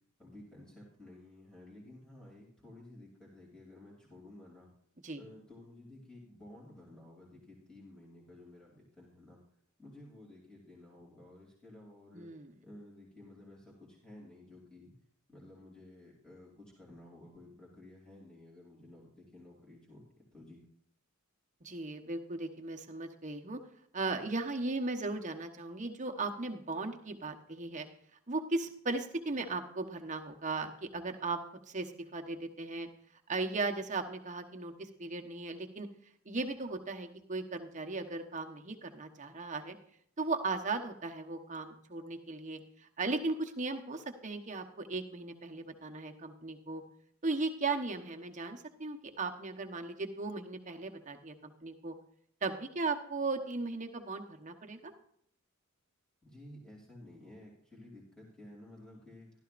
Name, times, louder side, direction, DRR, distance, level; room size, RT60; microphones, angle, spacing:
voice 1, 0.2-4.7 5.1-9.4 9.8-12.3 12.6-14.9 15.3-20.6 56.2-59.3, left 1 dB, 5° left, -5 dB, 2.9 m, -54 dB
voice 2, 12.1-12.5 21.6-23.6 23.9-27.9 28.3-31.4 31.7-32.9 33.3-35.9 36.2-39.7 40.2-46.8 47.2-51.9 52.4-54.9, right 3 dB, 35° right, 4 dB, 1.1 m, -37 dB
15.0 x 12.5 x 2.5 m, 0.67 s
head